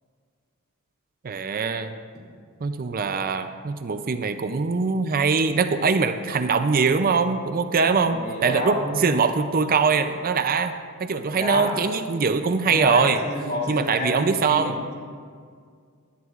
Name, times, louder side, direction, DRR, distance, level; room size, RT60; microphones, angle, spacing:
voice 1, 1.2-1.9 2.6-10.7 11.0-13.2 13.7-14.7, right 5 dB, 45° right, 9 dB, 0.5 m, -22 dB
voice 2, 7.8-9.0 11.3-11.7 12.7-14.9, left 1 dB, 45° left, -2 dB, 2.7 m, -29 dB
18.5 x 11.0 x 2.5 m, 2.1 s
head